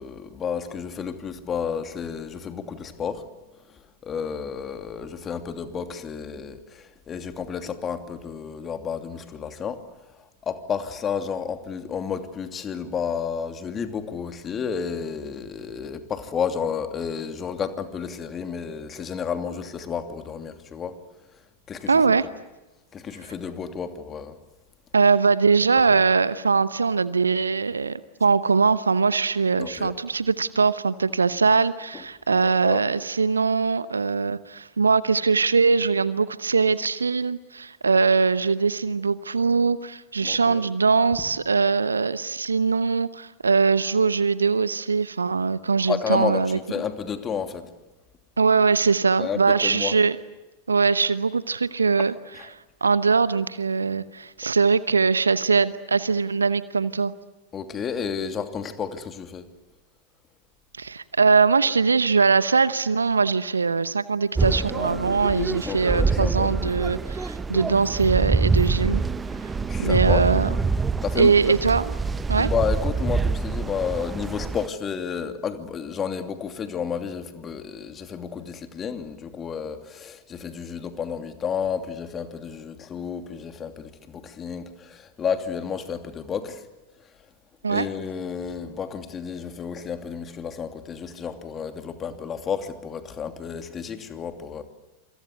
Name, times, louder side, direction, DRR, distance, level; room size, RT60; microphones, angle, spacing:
voice 1, 0.0-3.2 3.7-9.8 10.4-21.0 21.7-22.1 22.9-24.4 25.9-26.0 29.6-29.9 32.3-32.8 40.2-40.7 45.9-47.7 49.2-50.0 52.0-52.1 52.3-52.5 57.5-59.5 65.7-66.5 69.7-70.3 71.0-71.4 72.4-86.6 87.7-94.6, left 7 dB, 25° left, 8 dB, 2.8 m, -31 dB
voice 2, 21.9-22.3 24.9-46.6 48.4-50.2 50.7-52.1 52.8-57.1 60.8-69.0 69.8-70.5 71.2-71.8 72.3-72.5 87.6-87.9, right 4 dB, 75° right, 16 dB, 0.9 m, -21 dB
sound 1, 64.4-74.7, right 4 dB, 15° right, 1.0 m, -25 dB
28.0 x 26.5 x 8.2 m, 1.1 s
figure-of-eight pair, 90°, 0 cm